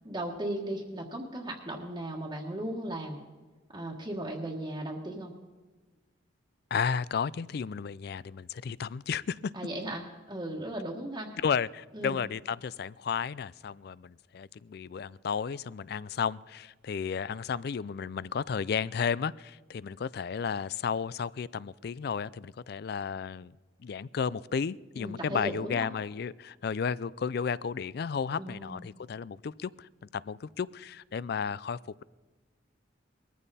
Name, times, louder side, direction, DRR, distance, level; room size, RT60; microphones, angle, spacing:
voice 1, 0.0-3.2 3.7-5.3 9.5-11.3 11.9-12.2 25.0-25.9 28.4-28.9, right 1 dB, 20° right, -2 dB, 1.4 m, -36 dB
voice 2, 6.7-9.5 11.4-23.6 23.8-32.0, left 6 dB, 55° left, 21 dB, 0.4 m, -33 dB
21.0 x 14.5 x 4.2 m, 1.3 s
head